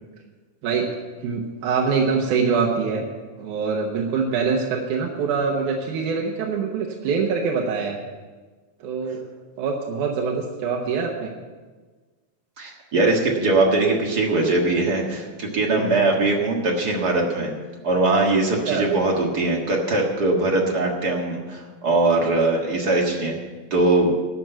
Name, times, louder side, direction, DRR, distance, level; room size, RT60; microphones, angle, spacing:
voice 1, 1.2-3.0 3.4-8.0 8.8-9.2 9.6-11.3 15.8-15.9 18.7-18.9, right 5 dB, 85° right, 0 dB, 2.5 m, -24 dB
voice 2, 12.6-17.5 17.8-23.4 23.7-24.1, right 2 dB, 40° right, 0 dB, 1.8 m, -21 dB
12.0 x 6.3 x 9.0 m, 1.3 s
omnidirectional pair, 3.4 m